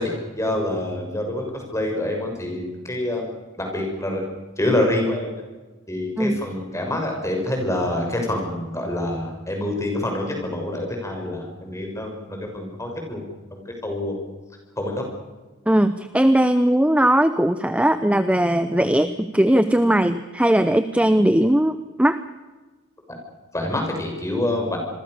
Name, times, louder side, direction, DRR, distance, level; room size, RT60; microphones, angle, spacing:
voice 1, 0.0-3.3 3.6-5.4 5.9-13.2 13.5-14.2 14.8-15.0 23.1-23.2 23.5-24.8, left 1 dB, 15° left, 2 dB, 6.7 m, -26 dB
voice 2, 15.7-22.2, right 1 dB, 5° right, 11 dB, 0.8 m, -19 dB
28.0 x 22.5 x 6.7 m, 1.2 s
head